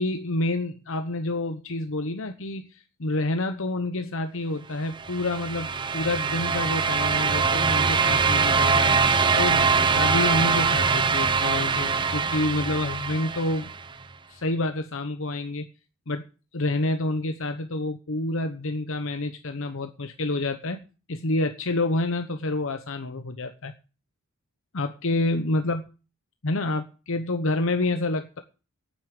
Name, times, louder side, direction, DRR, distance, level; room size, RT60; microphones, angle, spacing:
voice 1, 0.0-9.0 9.3-13.7 14.3-15.7 16.1-16.2 16.5-23.7 24.7-25.8 26.4-28.4, left 2 dB, 60° left, 7 dB, 1.0 m, -28 dB
sound 1, 5.0-13.9, right 5 dB, 20° right, 0.7 m, -23 dB
9.4 x 8.5 x 9.4 m, 0.35 s
head